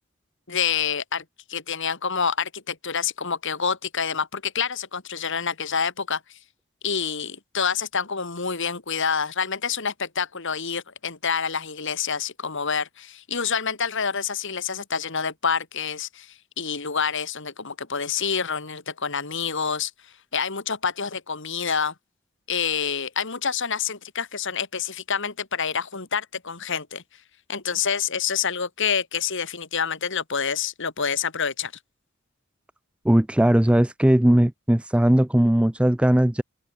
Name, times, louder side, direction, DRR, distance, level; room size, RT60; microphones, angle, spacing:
voice 1, 0.5-1.2 1.5-6.2 6.8-19.9 20.3-21.9 22.5-27.0 27.5-31.7, left 6 dB, 60° left, 3.1 m, -27 dB
voice 2, 33.0-36.4, right 1 dB, 5° right, 0.4 m, -19 dB
head